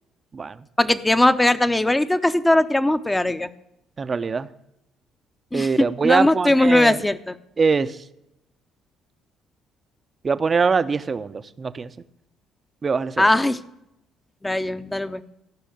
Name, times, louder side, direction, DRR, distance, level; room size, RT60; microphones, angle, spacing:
voice 1, 0.8-3.5 5.5-7.3 13.2-13.6 14.4-15.2, left 1 dB, 15° left, 11 dB, 0.8 m, -19 dB
voice 2, 4.0-4.5 5.5-7.0 7.6-8.0 10.2-11.9 12.8-13.3, right 5 dB, 40° right, 13 dB, 0.6 m, -22 dB
13.5 x 5.6 x 7.8 m, 0.83 s
hypercardioid pair, 60°, 0 cm